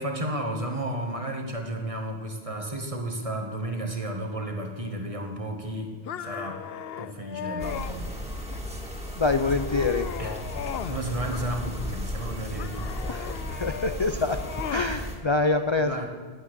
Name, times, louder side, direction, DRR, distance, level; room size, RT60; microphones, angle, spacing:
voice 1, 0.0-6.7 7.0-8.4 10.2-10.4 10.9-12.9 15.8-16.1, right 1 dB, 30° right, 3 dB, 2.0 m, -33 dB
sound 1, 6.1-8.0 8.5-9.0 9.4-11.0 11.3-12.0 12.6-14.9, left 9 dB, 65° left, 0.8 m, -37 dB
sound 2, 7.6-15.2, equal, 5° right, 2.6 m, -34 dB
voice 2, 9.2-10.1 13.1-14.4 14.7-16.1, left 3 dB, 30° left, 8 dB, 0.6 m, -26 dB
19.0 x 8.8 x 8.2 m, 1.5 s
omnidirectional pair, 1.2 m